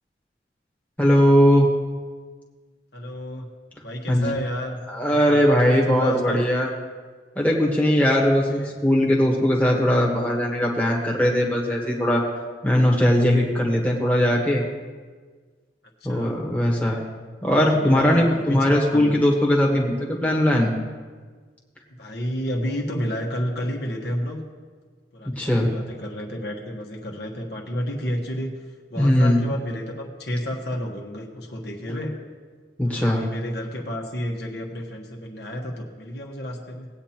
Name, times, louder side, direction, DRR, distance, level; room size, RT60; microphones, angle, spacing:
voice 1, 1.0-1.7 4.1-4.3 4.9-6.7 7.3-12.2 12.6-14.6 16.0-17.0 17.4-20.7 25.2-25.7 28.9-29.4 32.8-33.2, equal, 10° left, -3 dB, 1.4 m, -19 dB
voice 2, 2.9-3.5 3.8-4.8 5.1-5.4 5.7-6.4 8.5-8.7 16.0-16.3 17.7-19.1 22.0-24.4 25.1-28.6 28.9-32.1 32.9-36.9, equal, 65° left, -1 dB, 1.4 m, -31 dB
18.5 x 8.7 x 3.0 m, 1.5 s
head